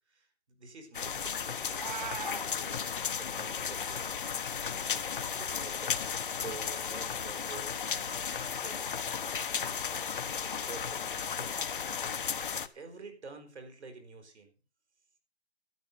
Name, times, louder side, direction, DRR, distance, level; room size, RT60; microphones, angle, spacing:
voice 1, 0.1-4.1 4.6-8.3 8.6-9.2 10.4-11.5 11.9-12.4 12.7-14.5, right 4 dB, 85° right, 6 dB, 4.9 m, -49 dB
sound 1, 0.9-12.7, left 7 dB, 50° left, 1.1 m, -34 dB
Meow, 1.6-2.5, right 7 dB, 40° right, 0.8 m, -39 dB
sound 2, 2.3-3.4 4.1-5.2 5.7-5.8 6.7-7.5 8.5-8.6, left 6 dB, 25° left, 1.8 m, -54 dB
12.5 x 10.5 x 6.5 m, 0.35 s
hypercardioid pair, 180°, 33 cm